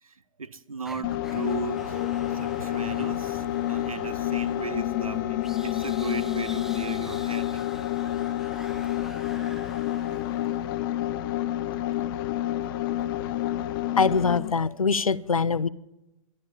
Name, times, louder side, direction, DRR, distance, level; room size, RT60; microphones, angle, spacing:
voice 1, 0.0-7.6 10.1-10.3, right 5 dB, 85° right, 0.9 m, -37 dB
spooky whispers, 0.8-11.0, right 1 dB, ahead, 0.5 m, -46 dB
sound 1, 1.0-14.6, left 13 dB, 40° left, 0.7 m, -29 dB
voice 2, 14.0-15.7, left 5 dB, 90° left, 0.6 m, -23 dB
14.0 x 11.5 x 7.1 m
figure-of-eight pair, 120°, 18 cm